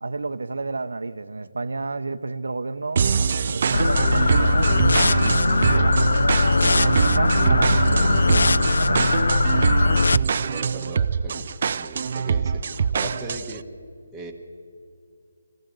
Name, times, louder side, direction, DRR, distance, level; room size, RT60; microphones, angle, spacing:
voice 1, 0.0-3.1 3.5-4.8 5.2-9.1, right 3 dB, 85° right, 0.8 m, -31 dB
sound 1, 3.0-13.6, right 6 dB, 40° right, 0.4 m, -23 dB
sound 2, 3.7-10.2, left 3 dB, 75° left, 0.4 m, -20 dB
voice 2, 10.1-11.4 11.8-13.7 14.1-14.3, right 2 dB, 5° right, 1.2 m, -38 dB
21.5 x 15.0 x 8.0 m
hypercardioid pair, 170°, 0 cm